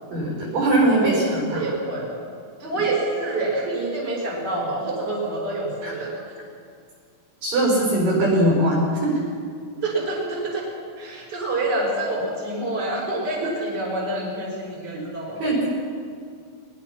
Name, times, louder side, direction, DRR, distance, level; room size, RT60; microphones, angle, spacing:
voice 1, 0.1-1.6 5.8-5.9 7.4-9.2 15.4-15.7, right 1 dB, 45° right, -2 dB, 6.4 m, -21 dB
voice 2, 1.5-2.3 2.6-6.1 9.8-10.6 11.0-15.4, right 2 dB, 20° right, -4 dB, 5.8 m, -27 dB
22.0 x 22.0 x 6.0 m, 2.2 s
omnidirectional pair, 5.5 m